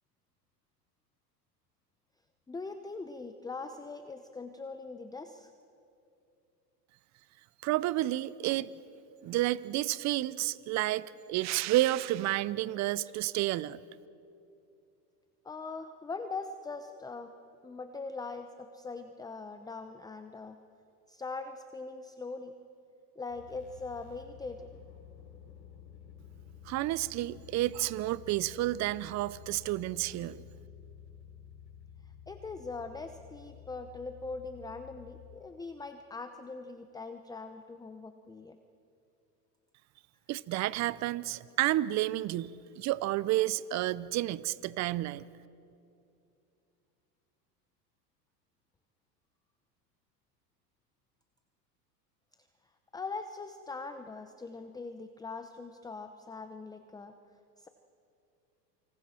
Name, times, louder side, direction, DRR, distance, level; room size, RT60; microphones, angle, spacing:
voice 1, 2.5-5.5 15.4-17.3 17.6-20.6 21.1-22.5 23.2-24.7 32.3-38.6 52.9-57.1 57.6-57.7, left 3 dB, 10° left, 8 dB, 0.8 m, -41 dB
voice 2, 7.6-8.7 9.2-13.8 26.7-30.4 40.3-45.2, right 16 dB, 35° right, 19 dB, 0.6 m, -30 dB
sound 1, 23.3-35.4, left 9 dB, 60° left, 4.1 m, -52 dB
28.0 x 25.5 x 4.4 m, 2.7 s
hypercardioid pair, 105°, 50 cm